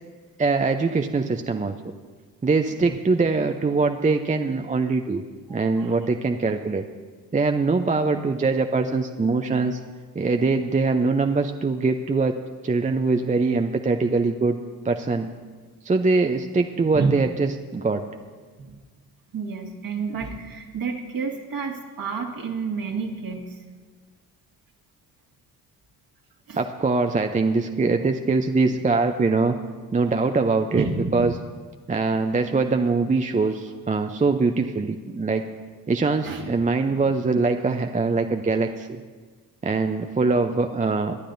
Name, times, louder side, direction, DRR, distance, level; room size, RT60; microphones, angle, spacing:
voice 1, 0.4-1.7 2.4-5.2 5.5-6.8 7.3-9.8 10.1-12.3 12.6-14.6 14.8-15.3 15.8-18.0 26.6-29.6 29.9-30.8 31.1-31.3 31.9-35.4 35.9-39.0 39.6-41.2, right 3 dB, 15° right, 5 dB, 0.6 m, -22 dB
voice 2, 5.5-6.0 16.9-17.2 18.6-18.8 19.3-23.6 26.5-26.6 28.6-28.8 30.7-31.3 36.2-36.5 36.9-37.0, right 4 dB, 45° right, 2 dB, 1.7 m, -30 dB
22.5 x 9.9 x 2.7 m, 1.4 s
hypercardioid pair, 50°, 47 cm